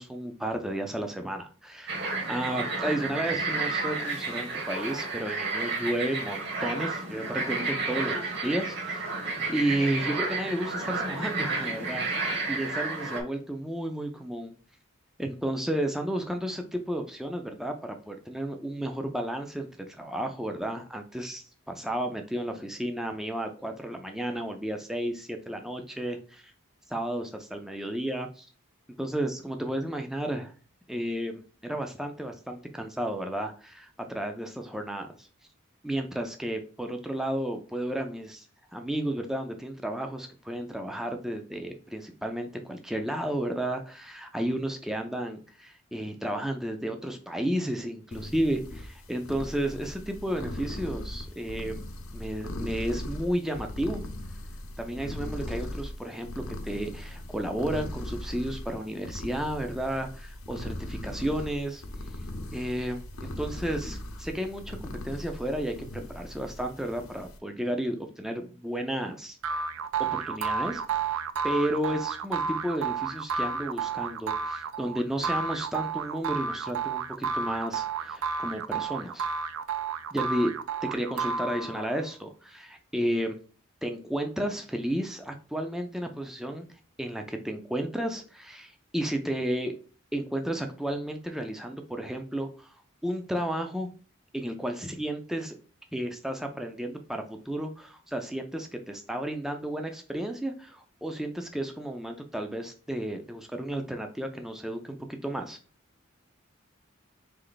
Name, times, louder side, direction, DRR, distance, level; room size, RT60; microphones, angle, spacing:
voice 1, 0.0-9.1 9.5-14.5 15.2-26.5 26.9-28.5 29.0-30.5 30.9-35.3 35.8-38.5 38.7-51.8 52.1-54.0 54.8-61.8 62.5-69.7 70.1-70.8 71.4-79.3 80.1-80.5 80.9-83.4 83.8-86.7 87.0-89.7 90.1-92.8 93.0-93.9 94.3-95.6 95.9-105.6, right 1 dB, ahead, 4 dB, 0.4 m, -32 dB
sound 1, 1.9-13.2, right 3 dB, 50° right, 1.2 m, -31 dB
sound 2, 48.1-67.4, left 1 dB, 85° left, 0.7 m, -39 dB
sound 3, 69.4-82.0, right 5 dB, 80° right, 0.3 m, -31 dB
3.8 x 3.2 x 3.9 m, 0.38 s
head